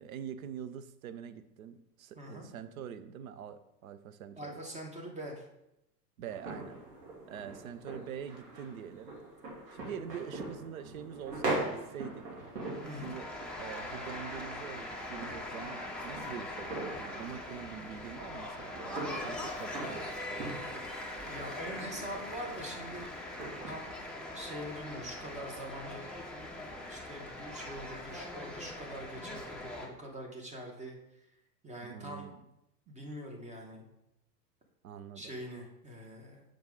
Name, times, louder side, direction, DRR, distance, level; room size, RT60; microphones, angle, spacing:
voice 1, 0.0-4.6 6.2-6.8 7.3-9.1 9.7-12.3 13.0-13.3 13.6-20.7 31.8-32.4 34.8-35.3, right 8 dB, 55° right, 11 dB, 0.7 m, -44 dB
voice 2, 2.1-2.5 4.4-5.4 12.8-13.1 21.3-23.1 23.7-26.2 26.8-31.0 31.6-32.3 32.9-33.8 35.1-36.4, equal, 15° right, 1 dB, 1.3 m, -44 dB
sound 1, 6.3-23.7, right 2 dB, 70° right, 2.7 m, -42 dB
sound 2, 12.6-29.9, left 1 dB, ahead, 0.7 m, -42 dB
7.0 x 5.1 x 3.8 m, 0.85 s
figure-of-eight pair, 95°, 49 cm